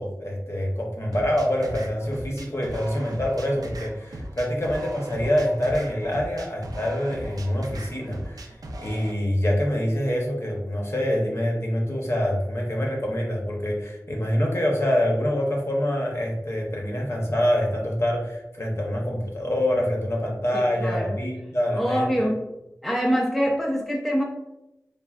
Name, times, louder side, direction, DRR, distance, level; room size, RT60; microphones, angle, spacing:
voice 1, 0.0-22.1, equal, 45° left, -1 dB, 0.7 m, -25 dB
sound 1, 1.1-9.1, right 1 dB, 80° right, 0.3 m, -38 dB
voice 2, 20.5-21.2 21.7-22.4 22.8-24.2, equal, ahead, -1 dB, 0.3 m, -24 dB
3.3 x 2.1 x 2.3 m, 0.95 s
wide cardioid pair, 60°, 6 cm